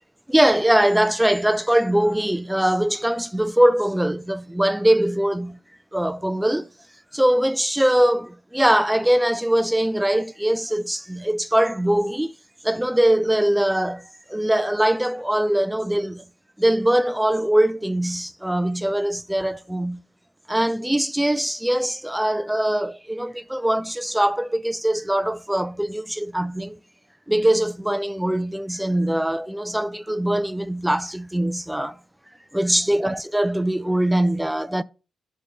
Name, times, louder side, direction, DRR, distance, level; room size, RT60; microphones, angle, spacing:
voice 1, 0.3-5.6 5.9-6.7 7.1-12.3 12.6-16.2 16.6-20.0 20.5-26.8 27.3-32.0 32.5-34.8, right 1 dB, 5° right, 0.4 m, -22 dB
6.4 x 6.2 x 3.8 m
cardioid pair, 80°, 0 cm